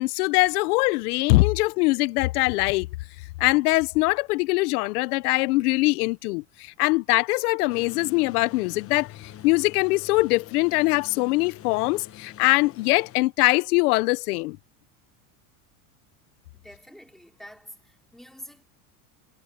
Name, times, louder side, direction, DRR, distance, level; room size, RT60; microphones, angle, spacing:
voice 1, 0.0-2.9 3.4-14.6, left 23 dB, 85° left, 0.6 m, -22 dB
sound 1, 7.7-13.2, left 11 dB, 30° left, 1.0 m, -45 dB
voice 2, 16.5-18.6, equal, ahead, 4.3 m, -47 dB
supercardioid pair, 110°, 44 cm